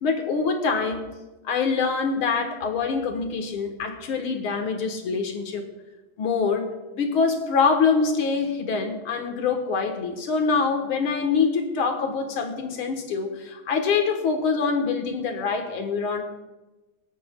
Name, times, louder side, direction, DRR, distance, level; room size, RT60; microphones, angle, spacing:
voice 1, 0.0-1.0 1.4-5.6 6.2-6.7 6.9-16.2, left 5 dB, 85° left, 5 dB, 2.2 m, -25 dB
25.5 x 8.5 x 2.3 m, 1.1 s
omnidirectional pair, 2.3 m